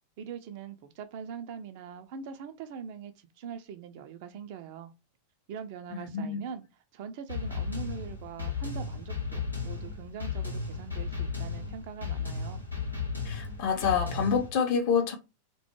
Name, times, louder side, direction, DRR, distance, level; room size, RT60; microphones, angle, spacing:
voice 1, 0.2-4.9 5.5-6.6 6.9-12.6, right 7 dB, 50° right, 0.3 m, -42 dB
voice 2, 5.9-6.4 13.2-15.1, left 6 dB, 45° left, 0.5 m, -27 dB
sound 1, 7.3-14.5, left 5 dB, 85° left, 0.6 m, -35 dB
2.2 x 2.0 x 2.9 m
figure-of-eight pair, 90°, 0 cm